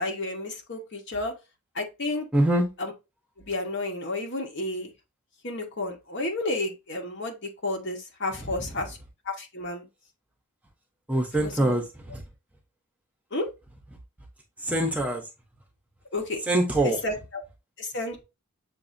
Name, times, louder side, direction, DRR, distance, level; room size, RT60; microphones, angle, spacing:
voice 1, 0.0-1.3 1.7-2.3 2.8-2.9 3.5-4.9 5.4-9.0 9.2-9.8 11.4-11.8 13.3-13.5 16.1-16.4 16.8-17.4 17.8-18.2, left 2 dB, 55° left, 1.2 m, -31 dB
voice 2, 2.3-2.7 11.1-11.8 12.1-12.2 14.6-15.2 16.5-17.0, right 1 dB, 5° right, 0.8 m, -23 dB
6.9 x 2.7 x 2.6 m
head